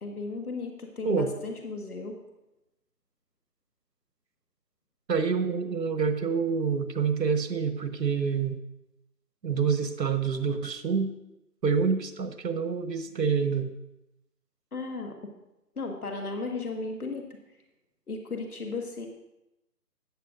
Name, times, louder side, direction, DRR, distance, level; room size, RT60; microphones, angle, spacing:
voice 1, 0.0-2.2 14.7-15.3 15.8-17.3 18.1-19.1, left 3 dB, 60° left, 3 dB, 1.7 m, -35 dB
voice 2, 5.1-8.6 9.4-11.1 11.6-13.7, right 5 dB, 85° right, 9 dB, 1.3 m, -27 dB
14.0 x 10.0 x 2.5 m, 0.91 s
figure-of-eight pair, 180°, 49 cm